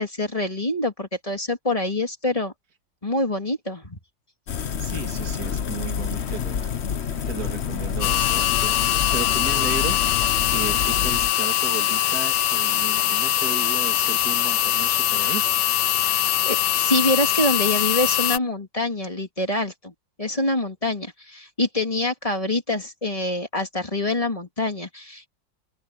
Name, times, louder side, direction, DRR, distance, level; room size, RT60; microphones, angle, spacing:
voice 1, 0.0-2.5 3.0-4.0 16.0-19.9 20.2-25.3, left 2 dB, 20° left, 2.7 m, -26 dB
sound 1, 4.5-11.3, left 7 dB, 50° left, 0.9 m, -28 dB
voice 2, 4.8-10.0 10.5-15.4, right 6 dB, 50° right, 2.8 m, -35 dB
sound 2, 8.0-18.4, left 13 dB, 70° left, 1.3 m, -22 dB
open air
omnidirectional pair, 2.1 m